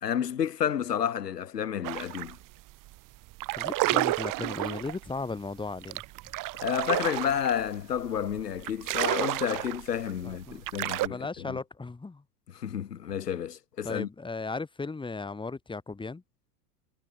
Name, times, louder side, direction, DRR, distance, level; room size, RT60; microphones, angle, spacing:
voice 1, 0.0-2.4 6.6-11.2 11.5-11.6 12.6-14.1, left 9 dB, 85° left, 4.1 m, -30 dB
sound 1, 1.8-2.4 2.7-2.9 3.3-11.1, right 18 dB, 40° right, 2.2 m, -31 dB
voice 2, 3.5-6.0 10.2-10.6 11.1-12.2 13.8-16.2, left 3 dB, 10° left, 2.5 m, -36 dB
hypercardioid pair, 95°, 47 cm